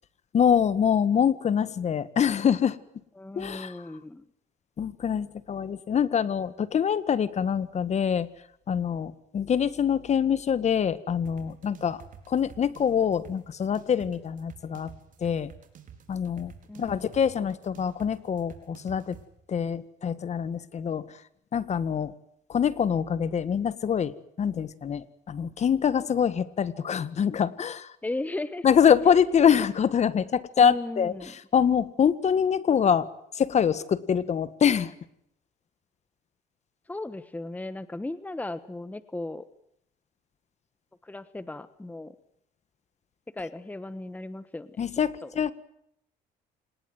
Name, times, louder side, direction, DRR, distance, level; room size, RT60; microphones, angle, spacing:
voice 1, 0.3-2.8 3.3-3.8 4.8-8.3 8.7-12.0 12.3-14.9 15.2-15.5 16.1-16.5 16.8-19.2 19.5-21.0 21.5-22.1 22.5-24.1 24.4-27.9 28.6-33.1 33.3-34.9 44.8-45.5, left 7 dB, 40° left, 16 dB, 1.6 m, -25 dB
voice 2, 3.2-4.3 16.7-17.0 28.0-28.6 30.6-31.3 36.9-39.4 41.0-42.2 43.3-44.8 45.2-45.3, left 2 dB, 10° left, 14 dB, 1.3 m, -36 dB
sound 1, 11.2-19.2, right 8 dB, 50° right, 4.7 m, -49 dB
27.0 x 20.0 x 9.3 m, 0.74 s
cardioid pair, 110°, 17 cm